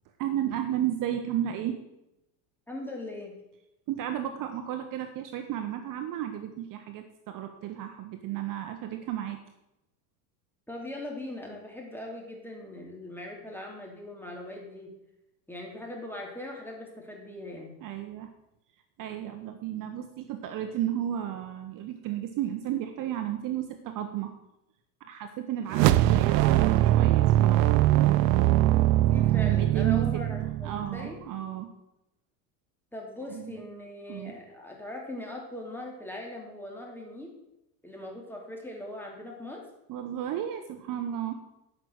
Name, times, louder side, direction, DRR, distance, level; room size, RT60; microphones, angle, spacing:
voice 1, 0.2-1.8 3.9-9.4 17.8-18.3 19.0-24.3 25.0-27.8 29.4-30.2 30.6-31.7 33.2-33.6 34.1-34.3 39.9-41.4, right 11 dB, 40° right, 6 dB, 1.1 m, -33 dB
voice 2, 2.7-3.4 10.7-14.9 15.5-17.7 29.0-31.2 32.9-37.3 37.8-39.6, left 1 dB, 5° left, 0 dB, 2.9 m, -40 dB
sound 1, 25.7-31.1, right 14 dB, 90° right, 0.7 m, -22 dB
11.5 x 6.0 x 8.1 m, 0.88 s
supercardioid pair, 140°, 48 cm